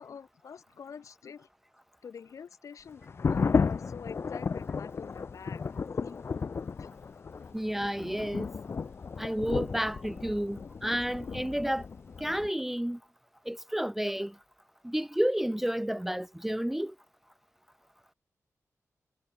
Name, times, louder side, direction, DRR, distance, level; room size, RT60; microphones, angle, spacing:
voice 1, 0.0-1.5 2.0-3.0 3.5-5.6 6.0-6.1 6.8-6.9, left 6 dB, 65° left, 3.2 m, -46 dB
sound 1, 3.0-12.5, left 5 dB, 45° left, 3.2 m, -33 dB
voice 2, 7.5-8.5 9.2-11.9 12.2-13.0 13.5-14.3 14.8-16.9, equal, 5° right, 0.7 m, -31 dB
wide cardioid pair, 175°, 6 cm